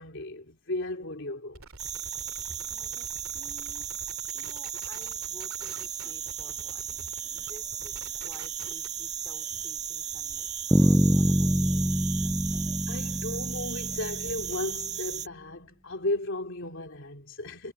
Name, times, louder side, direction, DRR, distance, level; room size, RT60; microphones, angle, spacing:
voice 1, 0.0-1.6 12.9-17.7, left 2 dB, 60° left, 3.2 m, -35 dB
Shooot Man I almost Made it, 1.5-9.0, right 4 dB, 85° right, 2.5 m, -48 dB
sound 1, 1.8-15.3, right 9 dB, 35° right, 1.7 m, -36 dB
voice 2, 2.4-4.0 4.3-11.9, left 1 dB, 20° left, 4.5 m, -53 dB
Bass guitar, 10.7-14.6, equal, ahead, 0.4 m, -25 dB
head